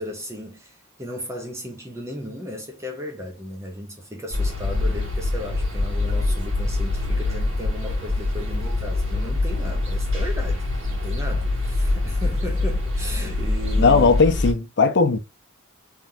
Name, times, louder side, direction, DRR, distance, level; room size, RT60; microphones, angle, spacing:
voice 1, 0.0-14.2, left 1 dB, 15° right, 0.7 m, -35 dB
sound 1, 4.3-14.5, left 2 dB, 60° right, 2.2 m, -24 dB
voice 2, 13.8-15.2, left 4 dB, 55° left, 0.7 m, -17 dB
3.7 x 3.5 x 2.7 m
head